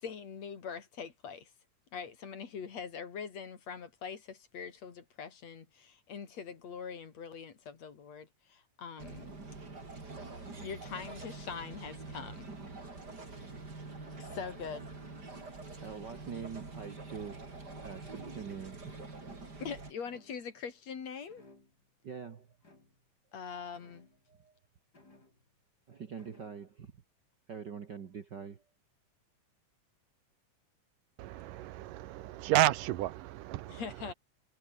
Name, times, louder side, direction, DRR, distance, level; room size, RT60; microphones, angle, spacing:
voice 1, 0.0-1.5 1.9-9.4 10.6-12.5 13.3-13.4 14.2-14.9 19.6-21.4 23.3-24.1 33.7-34.1, left 6 dB, 55° left, 3.8 m, -43 dB
sound 1, 9.0-19.9, right 3 dB, 30° right, 4.8 m, -46 dB
sound 2, 11.4-12.1 12.7-13.3 13.9-14.8 15.1-15.7 16.3-17.2 17.6-18.3 18.9-19.5 20.1-20.5 21.3-22.0 22.6-23.2 23.7-24.4 24.9-25.7 26.2-26.7, left 2 dB, 30° left, 6.9 m, -62 dB
voice 2, 15.8-17.5 17.8-19.0 22.0-22.6 24.3-24.5 25.9-27.0 27.5-28.6, right 6 dB, 50° right, 1.4 m, -44 dB
voice 3, 31.2-34.1, right 15 dB, 90° right, 2.6 m, -31 dB
omnidirectional pair, 3.7 m